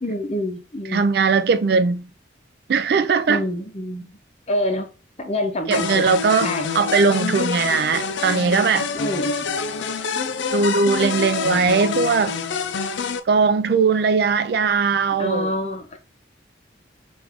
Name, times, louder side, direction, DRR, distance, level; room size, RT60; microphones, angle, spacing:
voice 1, 0.0-1.1 3.3-4.2 4.5-4.9 5.2-6.1 6.4-6.7 8.9-9.6 15.2-16.0, left 1 dB, 35° left, 0.7 m, -26 dB
voice 2, 0.9-2.1 2.7-3.4 5.7-6.5 6.7-8.9 10.5-12.3 13.3-15.5, right 5 dB, 60° right, 0.3 m, -19 dB
sound 1, 5.7-13.2, left 5 dB, 80° left, 0.5 m, -26 dB
4.7 x 2.5 x 3.5 m
head